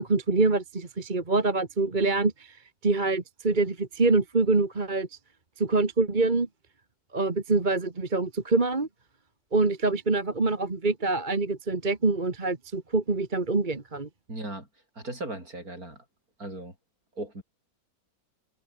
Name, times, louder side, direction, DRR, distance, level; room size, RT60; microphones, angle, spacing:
voice 1, 0.0-5.2 5.6-6.5 7.1-8.9 9.5-14.1, right 3 dB, 25° right, 1.9 m, -25 dB
voice 2, 14.3-14.7 15.0-16.0 16.4-16.7 17.2-17.4, right 2 dB, 45° right, 8.1 m, -37 dB
omnidirectional pair, 2.1 m